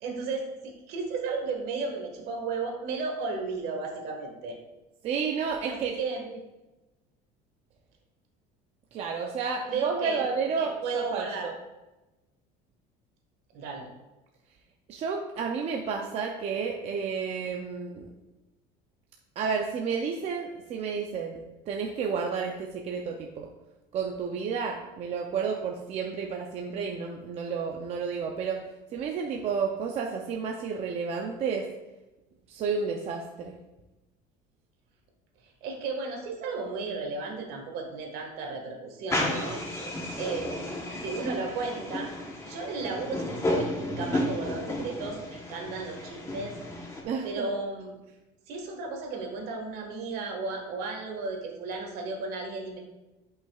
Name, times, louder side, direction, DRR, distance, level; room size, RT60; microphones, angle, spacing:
voice 1, 0.0-4.6 5.7-6.3 9.7-10.3 10.6-11.5 13.5-13.9 35.4-39.6 40.2-42.1 42.4-46.6 47.2-48.0 48.5-52.8, right 4 dB, 60° right, 2 dB, 1.6 m, -34 dB
voice 2, 5.0-5.9 8.9-11.5 14.9-18.1 19.4-21.4 21.7-23.5 23.9-28.6 28.9-31.7 32.5-33.6 47.0-47.5, right 5 dB, 35° right, 1 dB, 0.5 m, -31 dB
sound 1, 39.1-47.0, left 1 dB, 15° left, 1.0 m, -32 dB
11.0 x 5.6 x 2.4 m, 1.1 s
cardioid pair, 165°, 18 cm